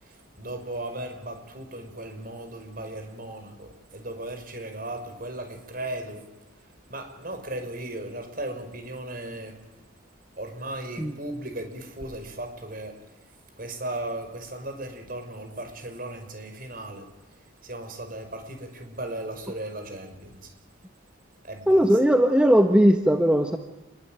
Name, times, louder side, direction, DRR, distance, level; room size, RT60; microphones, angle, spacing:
voice 1, 0.0-6.2 6.9-9.5 10.4-12.9 13.6-17.1 17.6-20.5 21.4-21.8, right 1 dB, 45° right, 6 dB, 5.5 m, -36 dB
voice 2, 21.7-23.6, equal, 5° right, 5 dB, 1.3 m, -18 dB
28.5 x 22.0 x 9.1 m, 0.94 s
head